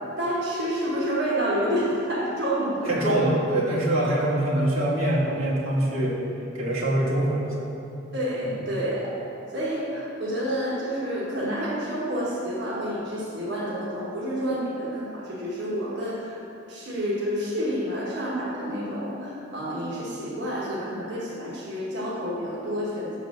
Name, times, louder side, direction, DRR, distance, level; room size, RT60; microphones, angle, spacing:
voice 1, 0.2-3.0 4.0-4.2 8.1-9.2 9.5-16.3 16.7-23.2, equal, 55° right, -7 dB, 1.3 m, -29 dB
voice 2, 2.8-6.2 6.5-7.8 8.4-8.5, right 1 dB, 80° right, -6 dB, 1.5 m, -24 dB
6.7 x 4.0 x 6.2 m, 2.8 s
head